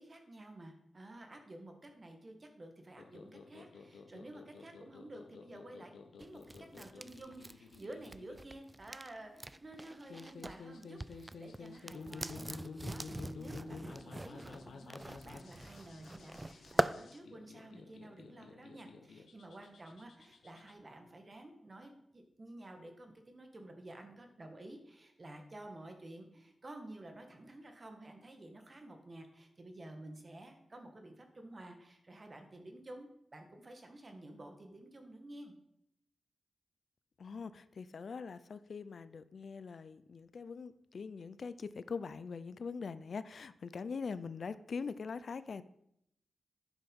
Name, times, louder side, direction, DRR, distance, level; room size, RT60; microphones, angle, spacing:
voice 1, 0.0-5.9 6.2-6.4 6.7-35.5, right 1 dB, 35° right, 5 dB, 1.7 m, -52 dB
sound 1, 3.0-20.7, left 4 dB, 90° left, 0.9 m, -51 dB
sound 2, 6.2-10.6 10.8-16.9, right 2 dB, 20° right, 0.3 m, -41 dB
voice 2, 37.2-45.6, left 5 dB, 60° left, 15 dB, 0.5 m, -42 dB
10.0 x 5.7 x 5.4 m, 0.76 s
wide cardioid pair, 85°, 0 cm